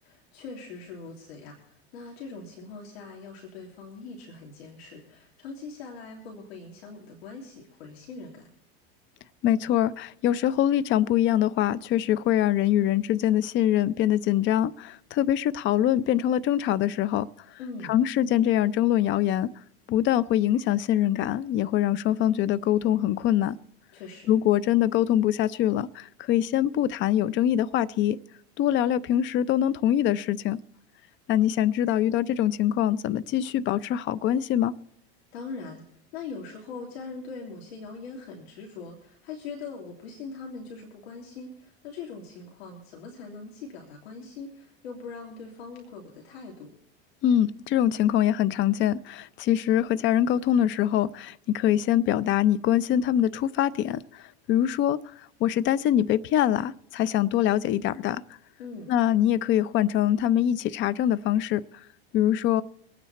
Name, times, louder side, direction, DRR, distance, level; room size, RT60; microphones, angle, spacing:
voice 1, 0.0-8.5 17.6-18.0 23.9-24.3 35.3-35.8 36.1-46.7 58.6-58.9, left 4 dB, 85° left, 1 dB, 3.1 m, -41 dB
voice 2, 9.4-17.3 17.9-19.5 19.9-23.6 24.3-28.2 28.6-30.6 31.3-34.7 47.2-54.2 54.5-55.0 55.4-58.2 58.9-61.6 62.1-62.6, left 11 dB, 40° left, 18 dB, 0.7 m, -24 dB
24.0 x 9.3 x 4.2 m, 0.69 s
supercardioid pair, 125°, 31 cm